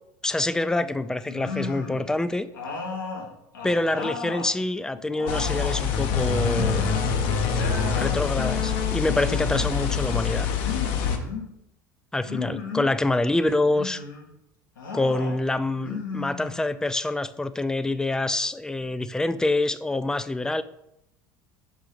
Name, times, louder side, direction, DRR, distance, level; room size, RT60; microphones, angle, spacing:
voice 1, 0.2-2.5 3.6-6.9 7.9-10.5 12.1-14.0 14.9-20.6, left 2 dB, 5° left, 13 dB, 0.3 m, -26 dB
sound 1, 1.3-2.1 2.5-4.5 4.9-5.9 6.4-7.1 7.4-8.1 9.0-9.8 10.6-11.5 12.2-13.0 13.6-14.2 14.8-15.4 15.8-16.9, left 4 dB, 85° left, 1.2 m, -35 dB
sound 2, 5.3-11.2, left 6 dB, 65° left, 0.8 m, -25 dB
5.5 x 3.8 x 4.9 m, 0.80 s
hypercardioid pair, 75°, 10 cm